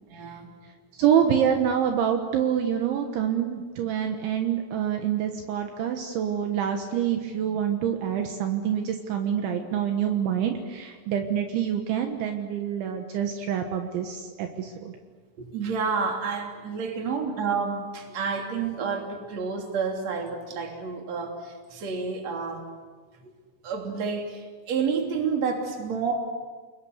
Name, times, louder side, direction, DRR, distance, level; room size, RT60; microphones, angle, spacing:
voice 1, 0.1-0.5 7.7-7.8 15.4-22.7 23.1-23.3 23.6-26.1, right 5 dB, 40° right, 2 dB, 3.6 m, -30 dB
voice 2, 0.9-14.9, right 9 dB, 70° right, 4 dB, 3.6 m, -26 dB
29.5 x 21.0 x 8.0 m, 1.5 s
omnidirectional pair, 5.8 m